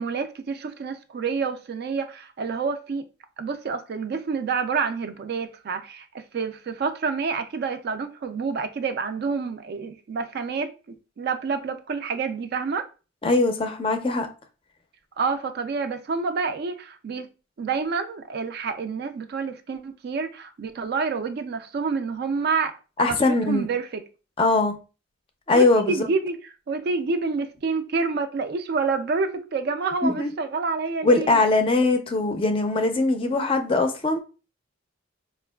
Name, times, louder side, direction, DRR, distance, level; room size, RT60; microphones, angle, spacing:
voice 1, 0.0-3.1 3.4-10.7 11.2-12.9 15.2-17.3 17.6-22.8 23.0-23.2 23.5-24.0 25.5-26.4 26.7-31.4, right 4 dB, 55° right, 0.3 m, -28 dB
voice 2, 13.2-14.3 23.0-23.7 24.4-24.7 25.5-26.1 30.0-30.3 31.0-34.2, left 3 dB, 30° left, 0.4 m, -21 dB
4.3 x 2.3 x 2.2 m
head